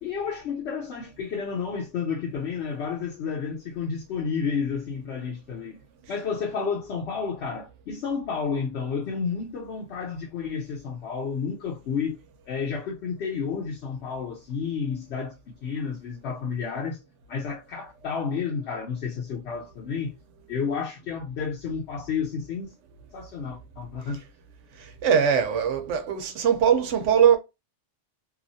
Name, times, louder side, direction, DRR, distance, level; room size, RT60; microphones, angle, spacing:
voice 1, 0.0-5.8 6.1-12.2 12.5-15.3 15.6-17.0 17.3-20.1 20.5-22.7 23.1-24.2, left 6 dB, 70° left, 0.9 m, -31 dB
voice 2, 24.8-27.4, right 8 dB, 80° right, 1.0 m, -21 dB
2.9 x 2.4 x 2.6 m
omnidirectional pair, 1.2 m